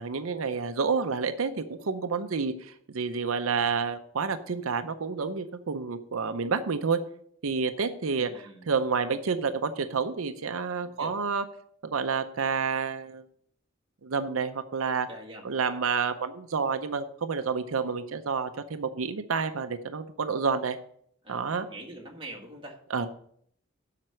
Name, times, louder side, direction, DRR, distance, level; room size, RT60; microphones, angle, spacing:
voice 1, 0.0-7.0 7.4-8.3 8.7-11.4 11.8-13.2 14.0-15.1 15.4-20.8 21.3-21.7 22.9-23.1, right 5 dB, 90° right, 9 dB, 0.6 m, -29 dB
voice 2, 8.0-8.7 10.8-11.1 15.1-15.5 21.2-22.8, right 1 dB, 25° right, -1 dB, 1.8 m, -44 dB
7.6 x 5.8 x 7.8 m, 0.65 s
head